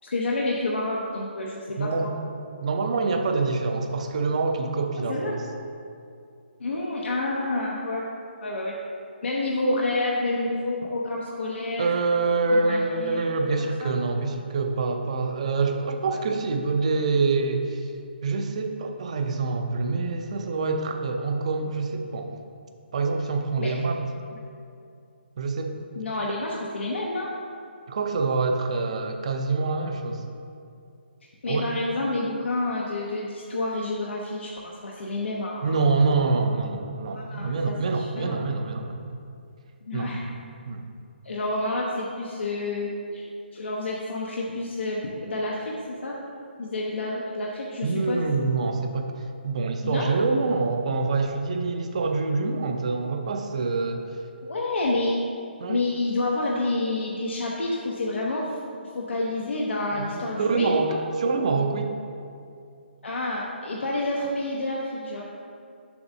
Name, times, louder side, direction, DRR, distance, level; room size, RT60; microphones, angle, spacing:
voice 1, 0.0-2.1 5.1-5.4 6.6-8.1 8.4-8.7 9.2-11.9 12.5-13.4 13.8-13.9 16.1-16.2 23.6-23.8 24.3-24.4 25.9-27.3 31.4-35.8 37.1-38.4 39.8-40.3 41.2-43.2 43.5-46.2 46.6-48.2 49.8-50.1 54.4-55.2 55.7-58.6 58.9-61.0 63.0-65.2, left 2 dB, 80° left, -3 dB, 0.8 m, -29 dB
voice 2, 1.8-2.1 2.6-5.4 11.8-17.9 18.2-22.3 22.9-24.0 25.4-25.7 27.9-30.3 31.5-31.7 35.6-39.1 39.9-40.1 40.7-40.8 47.8-54.0 55.6-55.8 60.0-61.9, right 3 dB, 35° right, 5 dB, 0.5 m, -26 dB
7.0 x 6.1 x 2.7 m, 2.4 s
hypercardioid pair, 170°, 6 cm